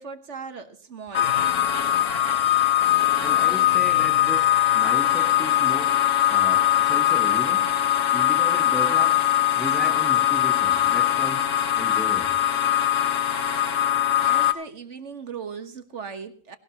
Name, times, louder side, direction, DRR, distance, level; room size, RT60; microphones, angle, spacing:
voice 1, 0.0-1.4 14.0-16.6, right 5 dB, 65° right, 1.7 m, -38 dB
sound 1, 1.1-14.5, left 12 dB, 75° left, 1.4 m, -21 dB
voice 2, 3.2-7.7 8.1-9.3 9.6-12.4, right 1 dB, ahead, 1.2 m, -35 dB
19.5 x 18.5 x 3.0 m
omnidirectional pair, 1.3 m